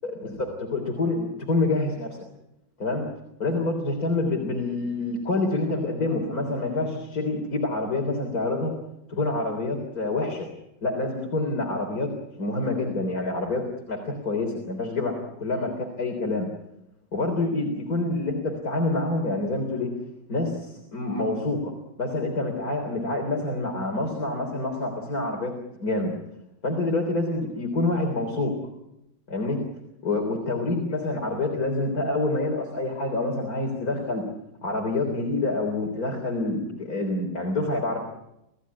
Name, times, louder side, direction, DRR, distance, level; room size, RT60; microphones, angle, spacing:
voice 1, 0.0-2.2 2.8-3.1 3.4-8.7 9.1-10.5 10.8-12.1 12.4-16.5 17.1-19.9 20.3-21.7 22.0-25.5 25.8-26.1 26.6-28.5 29.3-29.6 30.0-34.2 34.6-38.0, left 2 dB, 50° left, 1 dB, 4.1 m, -27 dB
27.5 x 16.0 x 9.6 m, 0.86 s
omnidirectional pair, 1.9 m